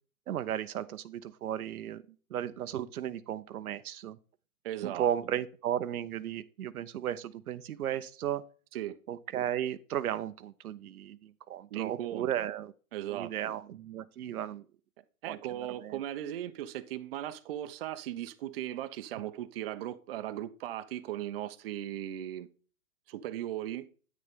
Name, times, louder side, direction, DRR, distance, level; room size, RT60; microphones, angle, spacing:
voice 1, 0.3-2.0 2.3-4.2 4.8-8.5 9.1-12.7 13.1-14.6 15.3-15.4 15.8-16.0, right 10 dB, 85° right, 0.7 m, -35 dB
voice 2, 4.6-5.1 8.7-9.0 11.7-12.5 12.9-13.5 15.2-22.5 23.1-23.9, right 12 dB, 45° right, 0.7 m, -38 dB
9.3 x 6.6 x 3.5 m
hypercardioid pair, 150°, 43 cm